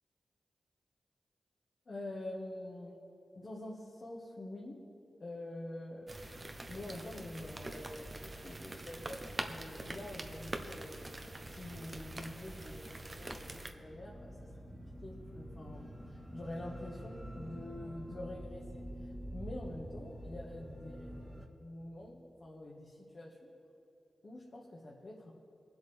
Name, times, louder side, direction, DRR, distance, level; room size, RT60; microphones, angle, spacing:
voice 1, 1.9-3.0 3.3-4.8 5.2-6.1 6.7-11.0 11.5-14.3 14.7-15.8 16.3-18.8 19.3-21.3 21.6-23.5 24.2-25.3, left 1 dB, 55° left, -5 dB, 1.8 m, -46 dB
sound 1, 6.1-13.7, right 2 dB, 35° right, 1.0 m, -44 dB
sound 2, 9.8-21.5, equal, 15° right, 1.6 m, -48 dB
24.0 x 8.0 x 3.5 m, 2.7 s
cardioid pair, 55°, 0 cm